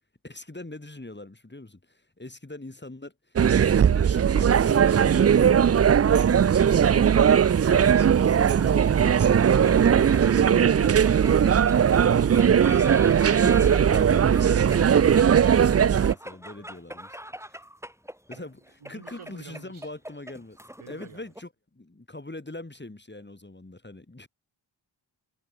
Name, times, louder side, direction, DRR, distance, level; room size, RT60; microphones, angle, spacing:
voice 1, 0.2-5.5 6.0-11.3 12.5-17.2 17.5-17.6 18.3-20.6 20.9-24.3, left 2 dB, 20° left, 3.2 m, -43 dB
sound 1, 3.4-16.1, right 8 dB, 35° right, 0.4 m, -19 dB
sound 2, 3.8-5.1 5.4-5.5 7.1-21.4, equal, 5° right, 6.8 m, -43 dB
voice 2, 15.7-16.7 18.3-18.5 18.8-19.9 20.8-21.3 23.2-23.4, right 6 dB, 90° right, 6.7 m, -51 dB
cardioid pair, 50°, 48 cm